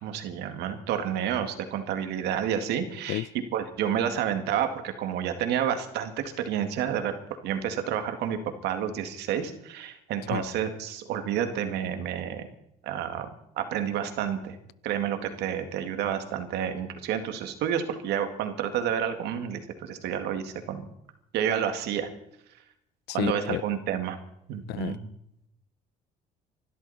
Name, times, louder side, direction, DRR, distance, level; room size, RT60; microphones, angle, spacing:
voice 1, 0.0-7.2 7.4-12.4 12.8-13.3 13.6-14.6 14.8-20.9 21.3-22.1 23.1-24.2 24.5-25.1, right 9 dB, 85° right, 7 dB, 2.1 m, -30 dB
voice 2, 23.1-23.6 24.7-25.0, left 15 dB, 80° left, 20 dB, 0.6 m, -30 dB
26.0 x 12.5 x 4.2 m, 0.77 s
cardioid pair, 110°, 17 cm